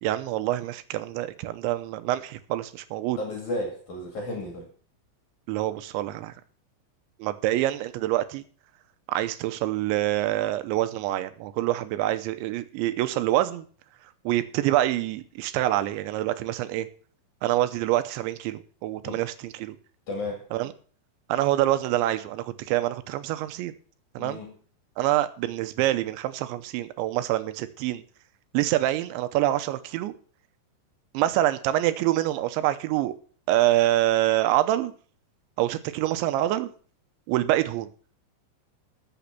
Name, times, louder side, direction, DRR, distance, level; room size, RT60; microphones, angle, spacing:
voice 1, 0.0-3.2 5.5-6.3 7.2-8.4 9.1-13.7 14.3-16.9 17.4-19.8 20.5-20.7 21.3-23.7 24.2-24.4 25.0-28.0 28.5-30.1 31.1-33.1 33.5-34.9 35.6-36.7 37.3-37.9, right 14 dB, 80° right, 3.1 m, -26 dB
voice 2, 3.2-4.7 19.0-19.2 20.1-20.5 24.2-24.5, left 1 dB, 50° left, 3.1 m, -33 dB
13.5 x 7.0 x 5.9 m
omnidirectional pair, 5.4 m